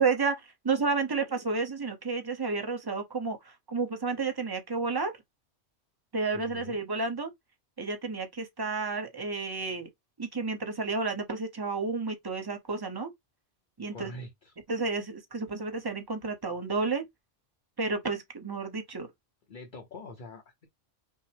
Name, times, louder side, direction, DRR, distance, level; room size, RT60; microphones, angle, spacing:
voice 1, 0.0-5.1 6.1-7.3 7.8-9.9 10.2-13.1 13.8-14.1 14.7-17.0 17.8-19.1, right 4 dB, 25° right, 0.7 m, -31 dB
voice 2, 6.3-6.8 13.9-14.6 19.5-20.7, left 2 dB, 45° left, 0.9 m, -44 dB
5.5 x 2.1 x 3.3 m
omnidirectional pair, 1.2 m